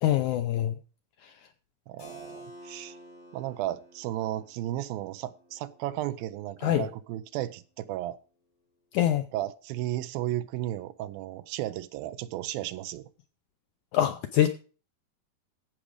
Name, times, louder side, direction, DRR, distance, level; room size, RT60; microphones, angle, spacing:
voice 1, 0.0-0.8 1.2-1.3 6.6-6.9 8.9-9.2 13.9-14.5, left 12 dB, 80° left, 1.7 m, -24 dB
voice 2, 1.9-3.0 3.3-8.2 9.3-13.1, right 14 dB, 80° right, 2.4 m, -34 dB
Keyboard (musical), 2.0-7.5, equal, 55° left, 5.0 m, -52 dB
15.5 x 6.1 x 5.0 m
omnidirectional pair, 4.2 m